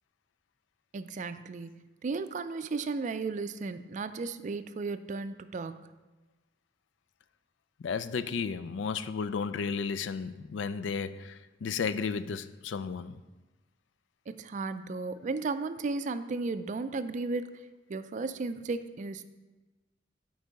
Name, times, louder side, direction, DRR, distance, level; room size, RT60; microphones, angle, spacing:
voice 1, 0.9-5.8 14.3-17.6 17.9-19.3, right 3 dB, 40° right, 11 dB, 0.4 m, -35 dB
voice 2, 7.8-13.2, left 5 dB, 85° left, 13 dB, 0.4 m, -33 dB
8.1 x 4.7 x 5.2 m, 1.2 s
head